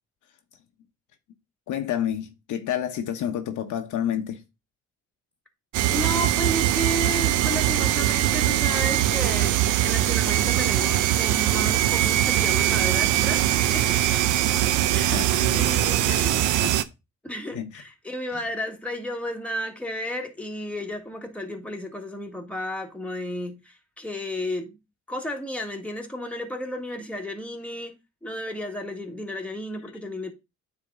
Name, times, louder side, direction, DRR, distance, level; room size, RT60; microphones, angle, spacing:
voice 1, 1.7-4.4 15.0-16.3 17.5-17.7, left 10 dB, 80° left, 1.1 m, -30 dB
sound 1, 5.7-16.8, right 13 dB, 80° right, 0.6 m, -22 dB
voice 2, 5.9-14.2 14.9-15.2 15.5-16.4 17.2-24.8 25.1-30.3, equal, 5° left, 1.6 m, -33 dB
9.6 x 3.6 x 3.7 m
cardioid pair, 90°, 30 cm